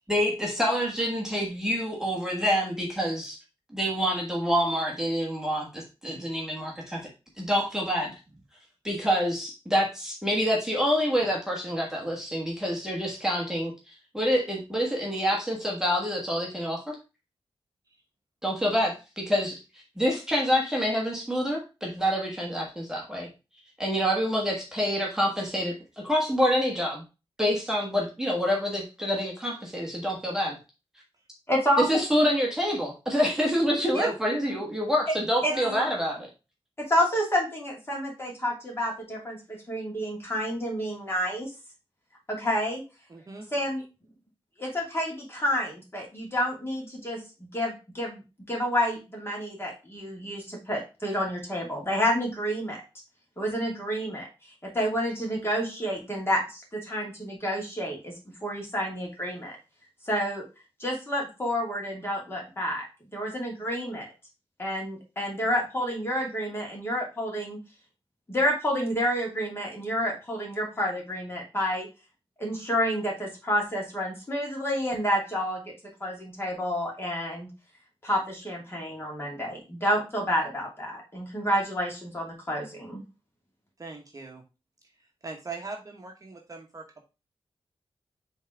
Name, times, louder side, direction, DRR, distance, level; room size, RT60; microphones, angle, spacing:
voice 1, 0.1-3.4 3.7-7.1 7.4-8.1 8.8-16.9 18.4-23.3 23.8-25.8 26.0-27.0 27.4-30.5 31.9-36.2, equal, 5° right, -2 dB, 1.5 m, -27 dB
voice 2, 31.5-31.8 35.4-35.5 36.9-41.5 42.3-42.8 43.5-43.8 44.6-48.2 48.5-52.8 53.4-54.3 54.6-58.1 58.4-59.5 60.0-60.4 60.8-62.8 63.1-64.1 64.6-67.6 68.3-71.9 72.4-75.6 76.0-77.5 78.0-83.0, equal, 25° left, -1 dB, 2.5 m, -29 dB
voice 3, 35.5-35.8 43.1-43.5 83.8-84.4 85.2-87.0, right 3 dB, 35° right, 2 dB, 1.0 m, -38 dB
5.5 x 3.6 x 4.7 m, 0.29 s
wide cardioid pair, 135°, 10 cm